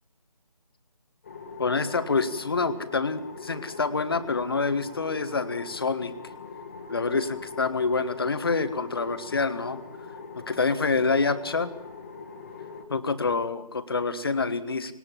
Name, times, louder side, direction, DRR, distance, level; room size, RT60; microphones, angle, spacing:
sound 1, 1.2-12.8, left 4 dB, 20° left, 1.8 m, -42 dB
voice 1, 1.6-6.1 6.9-9.8 10.3-11.7 12.9-14.9, left 4 dB, 35° left, 12 dB, 1.5 m, -27 dB
21.0 x 18.5 x 7.5 m, 0.86 s
figure-of-eight pair, 165°, 20 cm